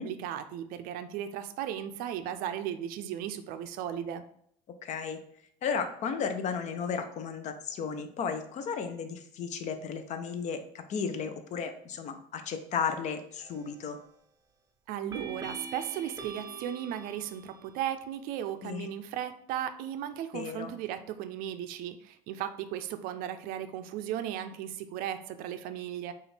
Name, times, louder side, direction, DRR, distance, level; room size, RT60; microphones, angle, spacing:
voice 1, 0.0-4.2 14.9-26.1, right 10 dB, 65° right, 10 dB, 0.4 m, -36 dB
voice 2, 4.8-5.2 5.6-14.0 18.6-18.9 20.3-20.7, left 6 dB, 50° left, 8 dB, 0.6 m, -34 dB
sound 1, 13.4-13.9 15.1-17.9, right 3 dB, 20° right, 0.6 m, -44 dB
4.9 x 2.4 x 3.2 m, 0.69 s
supercardioid pair, 100°, 16 cm